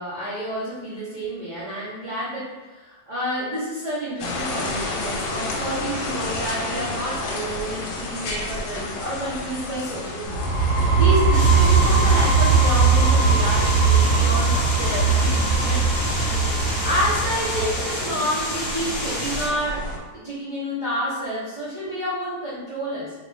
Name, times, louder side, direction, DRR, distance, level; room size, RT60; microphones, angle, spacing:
voice 1, 0.0-10.5 10.9-16.1 16.8-19.8 20.1-23.1, equal, 80° right, -12 dB, 0.4 m, -29 dB
sound 1, 4.2-20.0, left 2 dB, 85° left, 1.3 m, -32 dB
sound 2, 10.3-17.9, right 4 dB, 70° left, 0.6 m, -19 dB
sound 3, 11.3-19.5, left 1 dB, 45° left, 0.8 m, -29 dB
2.9 x 2.3 x 3.7 m, 1.2 s
omnidirectional pair, 2.0 m